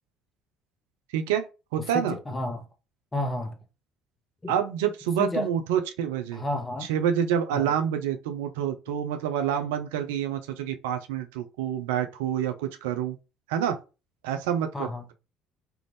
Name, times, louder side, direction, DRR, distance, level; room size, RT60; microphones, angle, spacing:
voice 1, 1.1-1.4 1.7-2.2 4.5-6.4 6.9-13.2 13.5-13.8 14.2-15.1, right 9 dB, 70° right, 0.4 m, -27 dB
voice 2, 1.8-2.7 3.1-3.6 4.4-4.5 5.2-5.5 6.3-6.9 7.5-7.7 14.7-15.1, left 1 dB, 20° left, 0.9 m, -31 dB
3.4 x 2.4 x 3.2 m
figure-of-eight pair, 55°, 0 cm